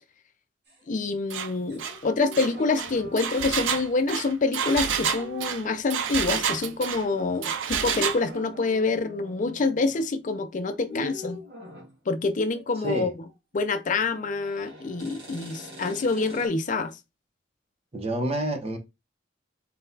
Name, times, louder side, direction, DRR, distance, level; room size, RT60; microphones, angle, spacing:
sound 1, 0.7-0.9 1.7-3.9 4.6-5.9 6.9-7.5 7.9-8.0 8.2-10.1 10.9-12.0 12.5-13.0 13.3-16.5, equal, 60° right, 1.7 m, -46 dB
voice 1, 0.9-11.4 12.1-13.3 13.5-16.9, left 3 dB, 45° left, 0.5 m, -26 dB
Engine, 1.3-1.5 1.8-2.0 2.3-7.0 7.4-8.2, right 7 dB, 80° right, 0.5 m, -29 dB
voice 2, 17.9-18.8, right 1 dB, 35° right, 0.8 m, -28 dB
4.1 x 3.9 x 2.7 m
head